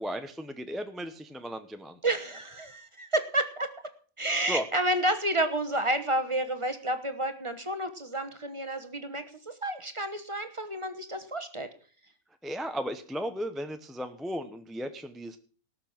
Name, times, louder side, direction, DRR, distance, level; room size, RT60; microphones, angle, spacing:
voice 1, 0.0-2.0 4.5-4.6 12.4-15.4, equal, ahead, 8 dB, 0.5 m, -35 dB
voice 2, 2.0-3.7 4.2-11.7, right 1 dB, 20° right, 9 dB, 1.2 m, -30 dB
18.0 x 6.7 x 6.0 m, 0.42 s
omnidirectional pair, 1.6 m